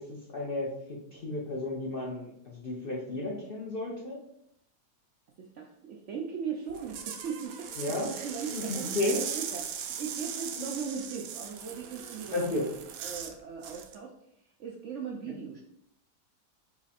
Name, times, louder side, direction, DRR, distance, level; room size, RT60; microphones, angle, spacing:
voice 1, 0.0-4.2 7.8-9.2 10.6-10.7 12.3-12.7, left 2 dB, 55° left, -3 dB, 0.6 m, -33 dB
voice 2, 5.4-7.7 8.0-12.7 13.0-14.1 14.6-15.6, right 6 dB, 70° right, 0 dB, 0.7 m, -39 dB
sound 1, 6.7-13.3 13.6-13.9, right 8 dB, 85° right, 1.2 m, -39 dB
4.0 x 3.1 x 4.1 m, 0.76 s
omnidirectional pair, 1.8 m